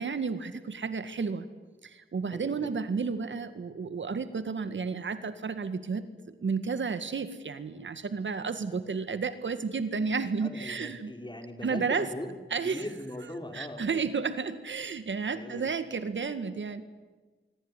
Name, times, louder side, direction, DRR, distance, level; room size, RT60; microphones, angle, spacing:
voice 1, 0.0-1.5 1.8-11.1 11.6-12.1 12.5-12.8 13.5-16.8, right 5 dB, 65° right, 11 dB, 1.9 m, -32 dB
voice 2, 2.3-2.7 10.4-12.3 12.6-14.0 15.3-15.7, left 1 dB, 20° left, 6 dB, 4.3 m, -40 dB
24.5 x 24.0 x 9.9 m, 1.3 s
cardioid pair, 70°, 21 cm